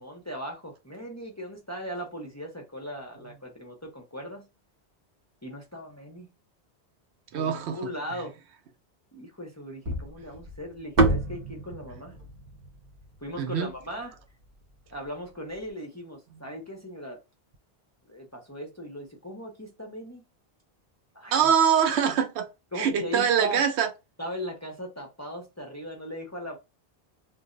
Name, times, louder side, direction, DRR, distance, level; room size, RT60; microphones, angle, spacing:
voice 1, 0.0-4.5 5.4-6.3 7.3-8.4 9.1-12.2 13.2-14.2 14.9-17.2 18.1-20.2 21.1-21.5 22.7-23.6 24.2-26.6, equal, 20° left, 0.5 m, -38 dB
voice 2, 7.3-7.9 13.4-13.7 21.3-22.4 22.8-23.9, right 8 dB, 90° right, 0.9 m, -24 dB
sound 1, 9.9-14.2, right 2 dB, 45° right, 0.8 m, -28 dB
2.5 x 2.0 x 3.7 m
omnidirectional pair, 1.1 m